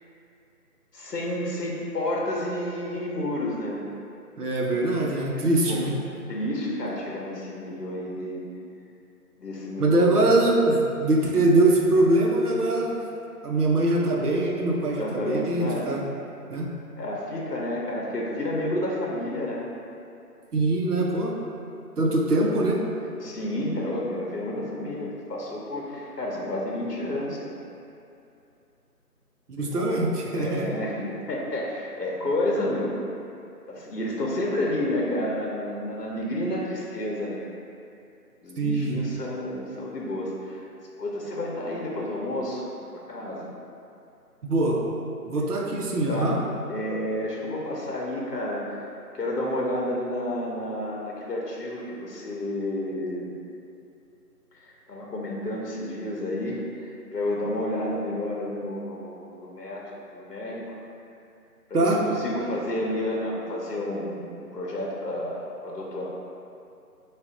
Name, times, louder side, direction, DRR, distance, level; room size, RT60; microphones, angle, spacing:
voice 1, 0.9-3.8 4.7-4.8 5.3-5.8 6.3-8.4 9.4-10.1 15.0-15.9 17.0-19.7 23.2-27.6 29.6-30.0 30.3-33.0 33.7-37.5 38.4-40.6 41.0-42.6 42.9-43.5 46.1-46.4 46.7-48.8 49.1-53.3 54.6-59.8 60.1-60.8 61.7-66.1, left 1 dB, 80° left, -3 dB, 0.9 m, -30 dB
voice 2, 4.4-6.0 9.8-13.0 13.4-16.0 16.5-16.7 20.5-21.4 22.0-22.8 29.5-30.7 38.6-39.0 44.4-44.8 45.3-46.4 61.7-62.0, right 2 dB, 70° right, -1 dB, 0.8 m, -23 dB
4.9 x 2.5 x 3.6 m, 2.6 s
figure-of-eight pair, 165°, 47 cm